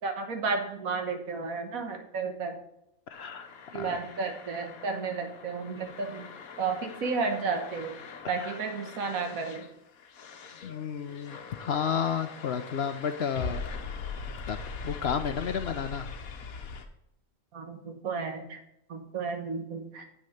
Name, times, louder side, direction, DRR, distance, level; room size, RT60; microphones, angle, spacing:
voice 1, 0.0-2.6 3.7-6.3 6.6-8.0 8.3-9.7 17.5-18.6 18.9-20.0, right 4 dB, 80° right, 5 dB, 1.7 m, -32 dB
sound 1, 3.1-16.8, left 5 dB, 80° left, 1.4 m, -42 dB
voice 2, 3.1-3.5 3.7-4.0 8.4-8.6 10.6-13.9 14.5-14.6 14.8-16.1, left 7 dB, 60° left, 9 dB, 0.8 m, -32 dB
8.3 x 6.3 x 5.7 m, 0.81 s
omnidirectional pair, 1.5 m